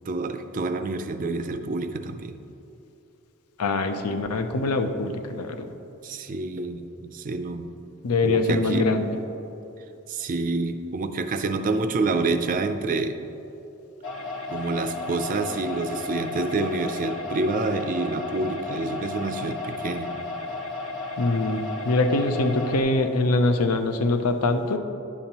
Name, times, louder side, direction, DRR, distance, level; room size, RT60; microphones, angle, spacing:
voice 1, 0.1-2.3 6.0-7.7 8.2-8.9 10.1-13.2 14.5-20.1, right 3 dB, 40° right, 9 dB, 0.4 m, -28 dB
voice 2, 3.6-5.7 8.0-9.2 21.2-24.8, left 2 dB, 85° left, 7 dB, 0.6 m, -23 dB
sound 1, 14.0-22.8, left 3 dB, 65° left, 1.2 m, -33 dB
10.0 x 7.0 x 2.9 m, 3.0 s
head